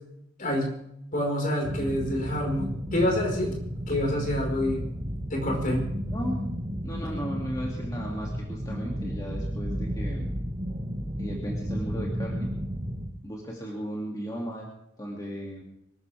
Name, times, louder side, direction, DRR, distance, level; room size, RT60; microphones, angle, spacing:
voice 1, 0.4-0.7 1.1-3.5 3.9-4.8 5.3-5.9, left 1 dB, 45° left, 1 dB, 4.9 m, -27 dB
sound 1, 1.6-13.1, equal, 30° right, 4.0 m, -33 dB
voice 2, 6.1-6.5 6.8-10.3 11.2-12.5 13.2-14.6 15.0-15.6, equal, 20° left, -2 dB, 2.6 m, -36 dB
24.5 x 14.0 x 3.5 m, 0.78 s
head